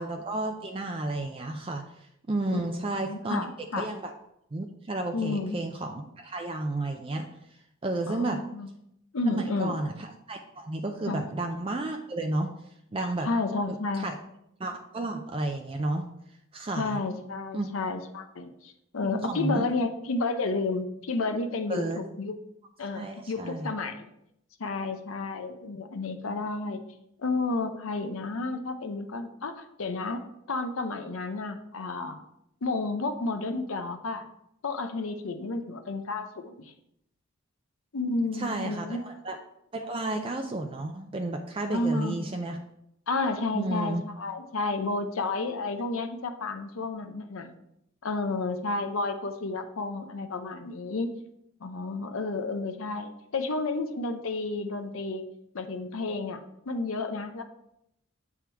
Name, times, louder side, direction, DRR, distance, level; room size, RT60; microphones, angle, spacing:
voice 1, 0.0-3.5 3.7-4.1 4.5-7.3 7.8-8.4 9.3-12.5 12.9-13.3 13.7-14.1 14.6-16.0 16.5-17.0 17.5-17.7 19.0-19.7 21.7-22.0 22.9-23.7 38.3-39.4 39.7-42.6 43.5-44.0, right 2 dB, 25° right, 3 dB, 0.4 m, -32 dB
voice 2, 3.0-3.9 5.1-5.6 8.1-8.7 9.1-9.8 11.1-11.2 13.2-14.1 16.8-22.4 22.8-24.0 24.6-26.8 27.2-30.2 30.5-32.2 32.6-34.2 34.6-36.7 37.9-39.0 41.7-42.3 43.1-47.5 48.0-51.1 51.6-55.3 55.5-56.4 56.7-57.4, left 3 dB, 75° left, 7 dB, 0.6 m, -31 dB
7.5 x 3.6 x 4.5 m, 0.79 s
head